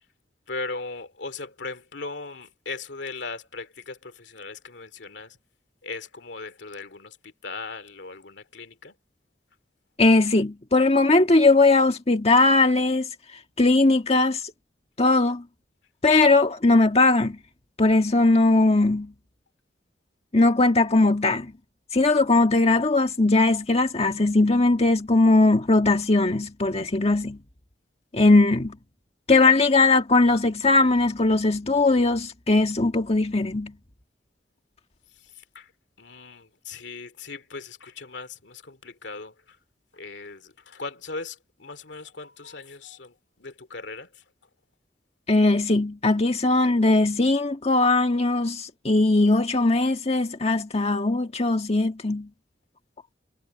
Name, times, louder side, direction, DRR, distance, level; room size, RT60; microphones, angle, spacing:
voice 1, 0.5-5.4 5.8-7.2 7.4-8.9 35.5-35.6 36.0-39.3 39.9-43.1 43.4-44.1, left 3 dB, 75° left, 2.6 m, -38 dB
voice 2, 10.0-13.1 13.6-14.4 15.0-15.4 16.0-17.4 17.8-19.1 20.3-21.5 21.9-27.4 28.1-28.7 29.3-33.7 45.3-52.3, left 2 dB, 35° left, 1.6 m, -20 dB
head